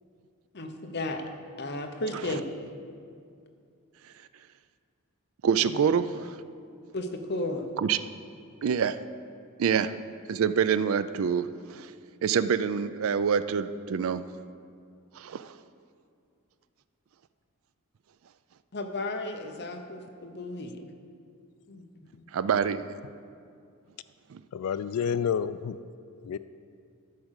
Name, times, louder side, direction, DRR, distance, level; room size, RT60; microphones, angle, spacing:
voice 1, 0.5-1.2 1.6-2.4 5.6-5.8 6.9-7.7 18.7-20.8 21.7-21.8 22.1-22.3, left 2 dB, 50° left, 5 dB, 0.8 m, -34 dB
voice 2, 5.4-6.1 7.8-8.0 8.6-9.0 9.6-9.9 10.3-11.5 11.7-11.9 12.2-14.2 15.2-15.5 22.3-22.9 24.3-24.4, right 7 dB, 65° right, 13 dB, 0.4 m, -26 dB
voice 3, 24.5-25.8 26.2-26.4, left 7 dB, 80° left, 15 dB, 0.3 m, -29 dB
13.0 x 4.9 x 6.4 m, 2.4 s
head